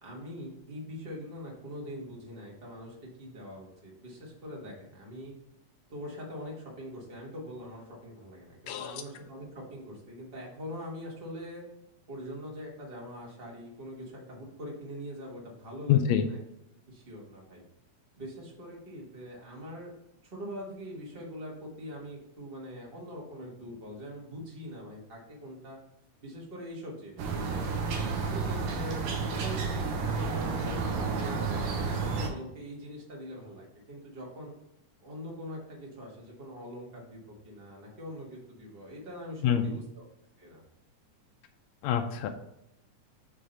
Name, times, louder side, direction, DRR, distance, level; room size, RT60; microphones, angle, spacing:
voice 1, 0.0-5.3 5.9-11.6 12.1-16.4 16.9-17.6 18.2-19.9 20.2-25.8 26.2-27.8 28.2-34.5 35.0-40.0 40.4-40.6, equal, 45° right, -3 dB, 0.7 m, -43 dB
voice 2, 8.7-9.0 15.9-16.2 39.4-39.6 41.8-42.3, left 10 dB, 85° left, 5 dB, 1.6 m, -26 dB
sound 1, 27.2-32.3, right 4 dB, 90° right, 2.5 m, -31 dB
6.6 x 3.3 x 5.4 m, 0.84 s
omnidirectional pair, 3.7 m